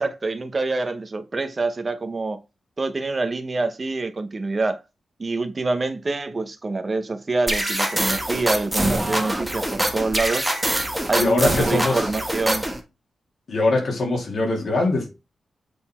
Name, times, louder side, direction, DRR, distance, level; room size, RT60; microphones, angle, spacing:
voice 1, 0.0-2.4 2.8-4.8 5.2-10.5 11.1-12.6, right 3 dB, 30° right, 0.9 m, -26 dB
sound 1, 7.5-12.8, right 1 dB, 5° right, 1.5 m, -24 dB
voice 2, 11.2-12.0 13.5-15.1, left 2 dB, 50° left, 2.9 m, -22 dB
8.1 x 4.0 x 4.4 m
wide cardioid pair, 160°, 0 cm